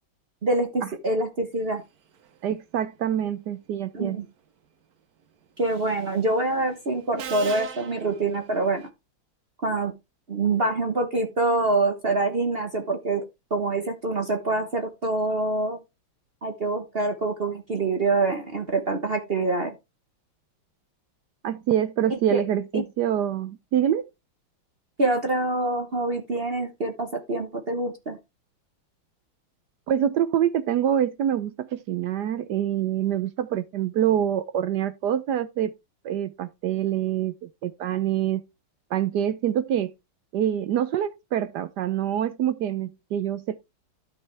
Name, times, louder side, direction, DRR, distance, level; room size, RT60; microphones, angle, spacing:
voice 1, 0.4-1.8 3.9-4.3 5.6-8.9 9.6-9.9 10.3-13.2 13.5-15.8 16.4-19.7 22.1-22.4 22.7-22.8 25.0-28.2, right 2 dB, 35° right, 1.0 m, -25 dB
voice 2, 2.4-4.2 21.4-24.1 29.9-35.7 36.0-38.4 38.9-39.9 40.3-43.6, right 10 dB, 70° right, 1.0 m, -25 dB
Subway metro underground, 5.7-6.0 7.2-8.9, right 8 dB, 55° right, 1.2 m, -38 dB
12.5 x 5.5 x 3.4 m
omnidirectional pair, 2.2 m